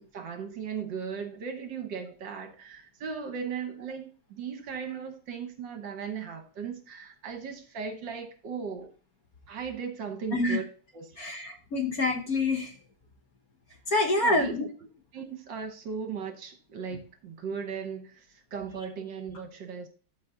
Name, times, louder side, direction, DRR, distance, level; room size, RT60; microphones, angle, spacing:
voice 1, 0.0-8.9 9.5-10.6 10.9-11.3 14.2-14.6 15.1-18.3 18.5-19.9, right 6 dB, 60° right, 1.6 m, -37 dB
voice 2, 11.2-12.7 13.9-14.7, left 2 dB, 50° left, 1.3 m, -26 dB
12.5 x 4.2 x 3.8 m
omnidirectional pair, 2.4 m